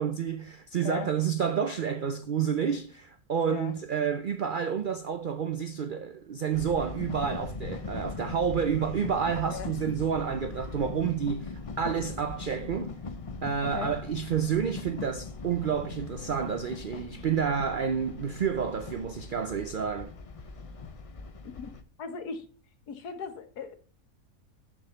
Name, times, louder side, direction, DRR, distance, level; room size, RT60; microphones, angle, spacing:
voice 1, 0.0-13.0 13.4-20.1, right 7 dB, 85° right, 0.4 m, -29 dB
sound 1, 6.5-21.8, left 4 dB, 55° left, 0.3 m, -40 dB
voice 2, 22.0-22.5 22.9-23.7, left 5 dB, 90° left, 1.7 m, -37 dB
6.8 x 6.2 x 6.9 m
omnidirectional pair, 1.6 m